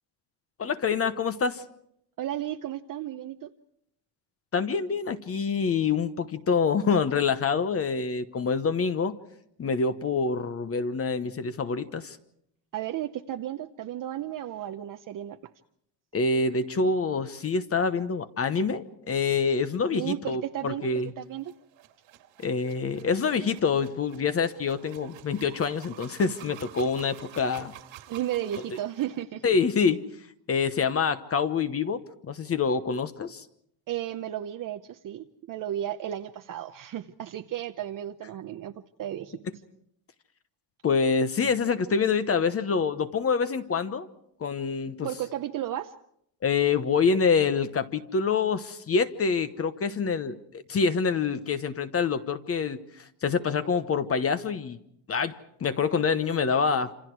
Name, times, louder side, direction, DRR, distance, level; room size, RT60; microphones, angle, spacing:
voice 1, 0.6-1.6 4.5-9.2 9.6-12.2 16.1-21.1 22.4-27.7 29.4-30.0 30.5-33.4 40.8-44.1 44.4-45.1 46.4-52.8 53.2-54.8 55.1-56.9, left 5 dB, 30° left, 11 dB, 1.0 m, -26 dB
voice 2, 2.2-3.5 12.7-15.4 19.9-20.9 21.2-21.5 28.1-29.4 33.9-38.7 39.0-39.4 45.0-45.9, right 12 dB, 45° right, 6 dB, 0.8 m, -33 dB
sound 1, 21.4-29.2, right 12 dB, 80° right, 2.6 m, -50 dB
27.5 x 27.0 x 4.7 m, 0.73 s
cardioid pair, 140°, 45 cm